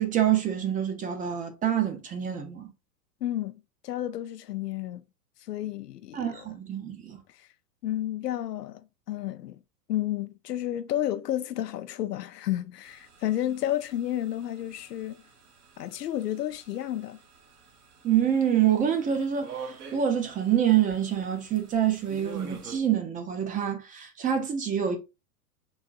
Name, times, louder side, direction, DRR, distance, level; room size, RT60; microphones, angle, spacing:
voice 1, 0.0-2.7 6.1-7.2 18.0-25.0, right 9 dB, 20° right, 0.5 m, -26 dB
voice 2, 3.2-3.6 3.8-5.0 5.5-6.4 7.8-8.8 9.1-9.6 9.9-15.2 15.8-17.2, left 12 dB, 80° left, 0.6 m, -31 dB
sound 1, 12.8-22.8, right 5 dB, 70° right, 1.3 m, -47 dB
3.9 x 3.6 x 2.4 m
hypercardioid pair, 100°, 47 cm